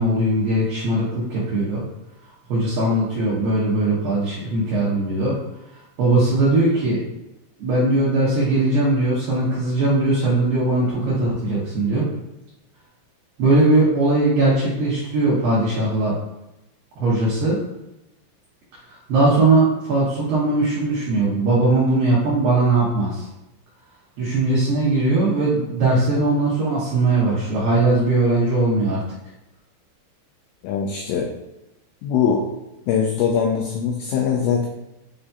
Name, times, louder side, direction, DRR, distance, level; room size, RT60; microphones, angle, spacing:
voice 1, 0.0-1.8 2.5-5.4 5.7-7.0 7.6-12.1 13.4-16.1 17.0-17.6 18.9-23.3 24.2-29.0, right 2 dB, 80° right, -7 dB, 2.0 m, -20 dB
voice 2, 30.6-31.3 32.0-32.5 32.9-34.7, left 7 dB, 90° left, 1 dB, 2.5 m, -22 dB
8.0 x 2.7 x 2.3 m, 0.92 s
omnidirectional pair, 5.5 m